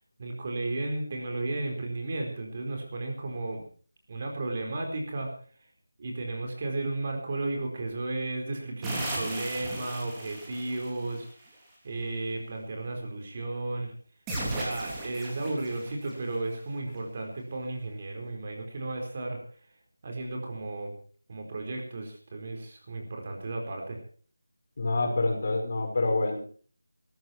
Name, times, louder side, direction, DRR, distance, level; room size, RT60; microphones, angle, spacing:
voice 1, 0.2-3.7 4.1-5.3 6.0-11.3 11.8-13.9 14.4-19.4 20.0-21.0 21.3-24.0, right 2 dB, 35° right, 2 dB, 4.6 m, -34 dB
sound 1, 8.8-11.1 14.3-16.4, right 1 dB, 10° right, 3.5 m, -36 dB
voice 2, 24.8-26.4, left 2 dB, 45° left, 3 dB, 5.2 m, -27 dB
17.5 x 14.5 x 4.6 m, 0.43 s
figure-of-eight pair, 170°, 0 cm